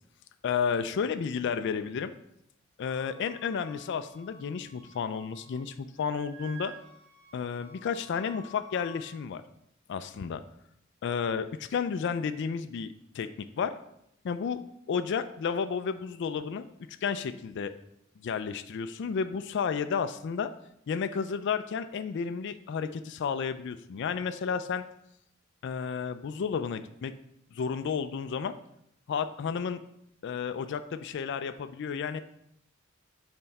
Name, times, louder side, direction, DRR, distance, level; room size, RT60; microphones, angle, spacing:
voice 1, 0.4-2.1 2.8-6.7 7.3-9.4 9.9-10.4 11.0-13.3 13.6-13.7 14.2-14.6 14.9-16.6 17.0-17.7 18.2-20.5 20.9-24.8 25.6-27.1 27.5-28.5 29.1-29.8 30.2-32.2, left 6 dB, 60° left, 10 dB, 0.3 m, -32 dB
Wind instrument woodwind instrument, 2.8-5.7 6.0-9.1, right 1 dB, 60° right, 1.2 m, -52 dB
7.7 x 4.4 x 4.1 m, 0.77 s
head